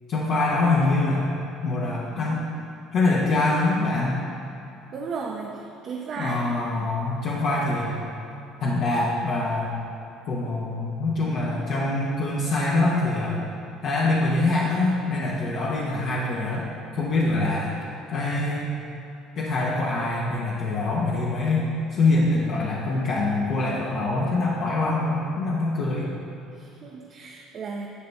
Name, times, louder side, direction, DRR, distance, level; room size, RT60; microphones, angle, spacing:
voice 1, 0.1-1.3 1.6-2.4 2.9-4.3 6.2-8.0 8.6-9.7 10.3-13.4 13.8-16.7 16.9-17.8 18.1-18.7 19.4-21.7 21.9-26.1, left 2 dB, 55° left, -5 dB, 1.1 m, -24 dB
voice 2, 4.9-6.4 6.8-6.9 26.5-27.9, right 4 dB, 40° right, -1 dB, 0.7 m, -35 dB
11.0 x 6.8 x 3.4 m, 2.7 s
cardioid pair, 140°, 0 cm